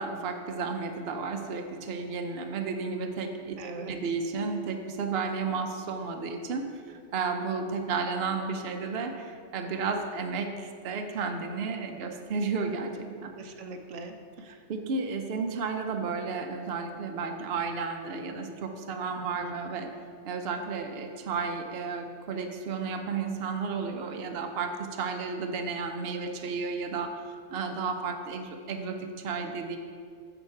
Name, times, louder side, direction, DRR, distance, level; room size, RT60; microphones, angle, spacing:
voice 1, 0.0-13.3 14.7-19.9 20.2-27.2 27.5-29.8, right 4 dB, 60° right, 5 dB, 0.9 m, -33 dB
voice 2, 3.6-3.9 13.4-14.6 19.3-19.5, right 3 dB, 85° right, 5 dB, 1.1 m, -42 dB
9.0 x 7.1 x 4.5 m, 2.2 s
omnidirectional pair, 1.2 m